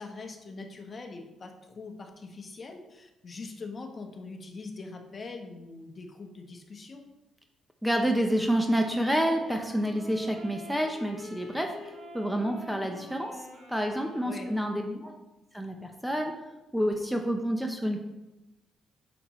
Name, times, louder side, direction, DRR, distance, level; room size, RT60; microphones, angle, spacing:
voice 1, 0.0-7.0 14.2-14.5 14.7-15.0, left 3 dB, 40° left, 4 dB, 1.1 m, -42 dB
voice 2, 7.8-11.8 12.1-15.1 15.5-16.3 16.7-18.0, equal, ahead, 4 dB, 0.7 m, -28 dB
sound 1, 8.3-14.8, equal, 70° right, 2.1 m, -47 dB
8.4 x 6.2 x 3.1 m, 1.0 s
cardioid pair, 90°, 0 cm